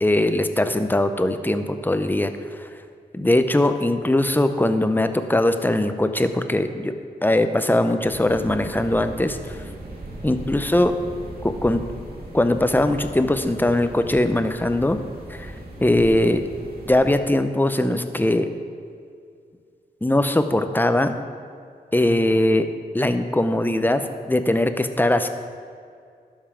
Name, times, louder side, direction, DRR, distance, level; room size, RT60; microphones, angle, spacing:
voice 1, 0.0-2.3 3.1-6.9 7.2-9.6 10.2-11.0 11.4-11.8 12.3-15.0 15.3-15.5 15.8-16.4 16.9-18.5 20.0-21.2 21.9-22.7 22.9-25.3, left 1 dB, 10° left, 9 dB, 0.7 m, -20 dB
sound 1, 8.0-17.1, right 1 dB, 65° right, 1.9 m, -38 dB
12.5 x 5.5 x 5.1 m, 2.2 s
cardioid pair, 55°, 17 cm